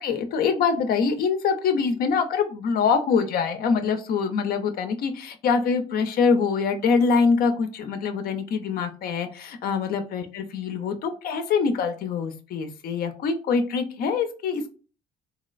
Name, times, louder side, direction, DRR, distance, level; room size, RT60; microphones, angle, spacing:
voice 1, 0.0-14.7, left 5 dB, 60° left, 7 dB, 0.5 m, -24 dB
3.0 x 2.8 x 2.3 m, 0.37 s
cardioid pair, 110°, 17 cm